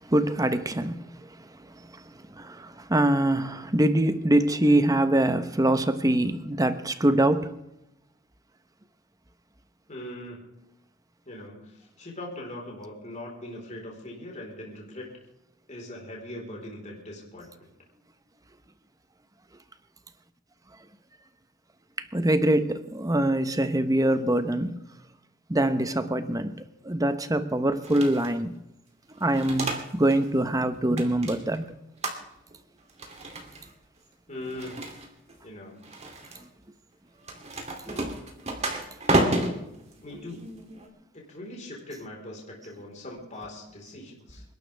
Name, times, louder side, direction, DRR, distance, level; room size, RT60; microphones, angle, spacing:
voice 1, 0.1-1.0 2.3-7.5 22.1-24.8 25.5-26.5 26.8-28.5 29.2-31.6 37.9-38.0, right 1 dB, 20° right, 1.0 m, -24 dB
voice 2, 9.9-10.4 11.3-11.7 12.0-15.1 15.7-17.7 34.3-34.8 35.4-35.8 40.0-40.5 41.1-44.4, left 1 dB, 40° left, 4.4 m, -40 dB
sound 1, 27.8-28.4 29.1-30.3 30.5-31.6 32.0-32.5 32.9-33.7 34.4-35.3 35.8-36.4 37.2-40.9, right 1 dB, 35° right, 2.9 m, -31 dB
28.0 x 12.0 x 3.5 m
head